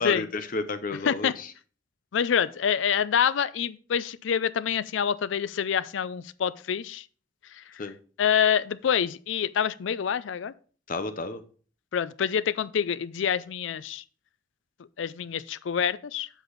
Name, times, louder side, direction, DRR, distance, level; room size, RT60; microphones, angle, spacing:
voice 1, 0.0-1.5 7.8-7.9 10.9-11.4, left 3 dB, 45° left, 0.7 m, -31 dB
voice 2, 2.1-7.0 7.5-7.6 8.2-10.5 11.9-14.0 15.0-16.3, left 8 dB, 85° left, 0.4 m, -26 dB
8.0 x 6.1 x 3.9 m
head